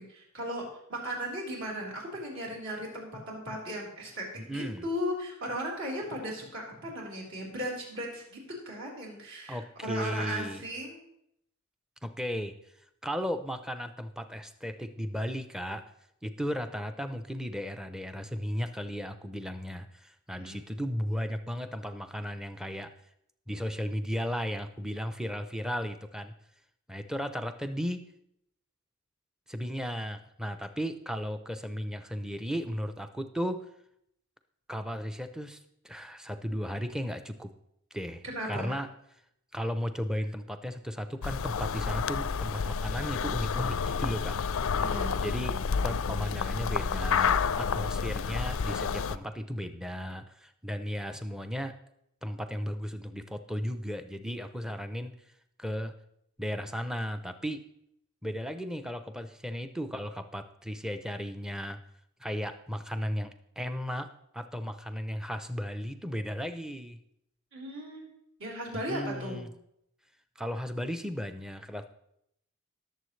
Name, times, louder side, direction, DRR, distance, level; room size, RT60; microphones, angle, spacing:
voice 1, 0.1-8.4 8.7-11.0 20.4-20.6 38.2-38.7 44.8-45.2 67.5-68.1 68.4-69.4, equal, 60° right, -3 dB, 4.1 m, -36 dB
voice 2, 4.4-4.9 9.5-10.6 12.0-12.5 13.0-15.8 16.2-22.9 23.5-26.3 26.9-28.1 29.5-33.6 34.7-35.6 35.8-37.5 37.9-38.9 39.5-44.4 45.2-51.8 52.2-55.1 55.6-55.9 56.4-57.6 58.2-61.8 62.2-64.1 64.3-67.0 68.9-69.5 70.4-71.9, equal, 5° right, 9 dB, 0.5 m, -35 dB
sound 1, 41.2-49.2, left 6 dB, 65° left, 0.4 m, -30 dB
19.0 x 7.2 x 3.2 m, 0.77 s
head